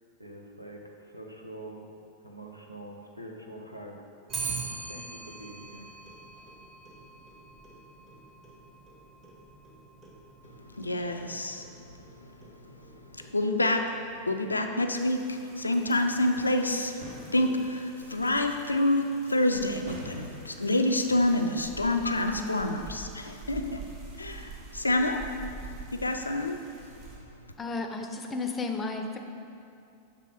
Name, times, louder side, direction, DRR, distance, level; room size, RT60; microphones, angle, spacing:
voice 1, 0.2-1.9 2.2-4.0 4.9-5.9, right 1 dB, 90° right, 1 dB, 0.7 m, -44 dB
Clock, 4.3-13.7, right 4 dB, 25° right, 1.1 m, -43 dB
voice 2, 10.7-11.9 12.2-12.7 13.1-17.0 17.3-23.8 24.1-25.2 25.6-26.6 26.9-27.1, left 1 dB, 80° left, 5 dB, 0.4 m, -28 dB
sound 1, 14.9-27.2, right 4 dB, 40° right, 1.3 m, -47 dB
sound 2, 15.2-22.1, equal, 60° right, 1.3 m, -49 dB
voice 3, 27.6-29.2, left 3 dB, 20° left, 4 dB, 0.5 m, -33 dB
6.7 x 3.5 x 4.9 m, 2.6 s
figure-of-eight pair, 90°, 0 cm